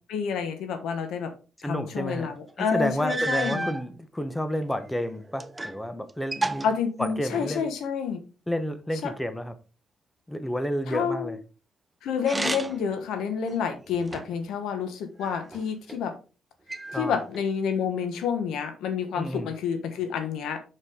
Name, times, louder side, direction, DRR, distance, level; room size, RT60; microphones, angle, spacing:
voice 1, 0.1-1.3 1.6-3.7 6.6-8.2 9.0-9.1 10.9-11.4 12.0-16.2 16.9-20.6, left 6 dB, 80° left, 1.4 m, -29 dB
voice 2, 1.6-2.3 2.6-6.7 7.0-7.7 8.5-9.6 10.3-11.4 16.9-17.2 19.1-19.5, equal, 10° left, 1.0 m, -30 dB
sound 1, 2.5-2.6 3.1-3.8 4.6-5.8 6.1-7.6 12.2-12.9 13.5-14.5 15.2-16.0 16.7-17.5, right 2 dB, 15° right, 0.5 m, -33 dB
6.7 x 6.5 x 3.7 m
cardioid pair, 90°, 0 cm